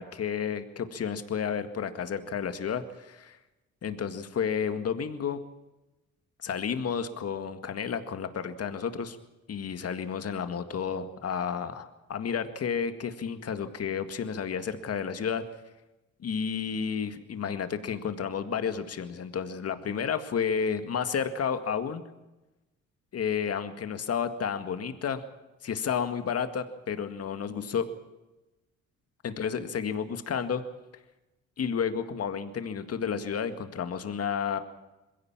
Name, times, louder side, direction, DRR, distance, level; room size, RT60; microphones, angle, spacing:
voice 1, 0.0-3.4 3.8-5.4 6.4-9.2 9.5-15.4 16.2-22.0 23.1-25.2 25.6-27.9 29.2-30.6 31.6-34.6, left 7 dB, 55° left, 9 dB, 2.0 m, -31 dB
21.5 x 16.5 x 7.5 m, 1.0 s
cardioid pair, 90°, 30 cm